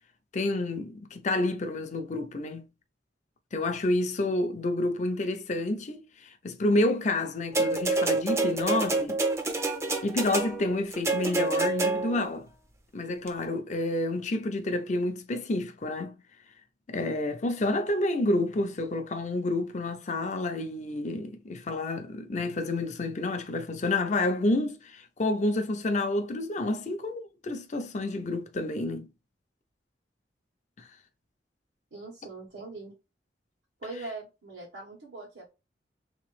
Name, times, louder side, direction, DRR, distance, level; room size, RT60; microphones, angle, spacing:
voice 1, 0.3-2.6 3.5-9.2 10.0-12.5 12.9-16.2 16.9-29.1, left 2 dB, 40° left, 0.5 m, -29 dB
sound 1, 7.5-12.3 13.3-13.4, right 3 dB, 15° right, 0.5 m, -27 dB
voice 2, 31.9-32.9 33.8-35.5, right 3 dB, 85° right, 1.4 m, -41 dB
3.4 x 2.9 x 3.1 m
head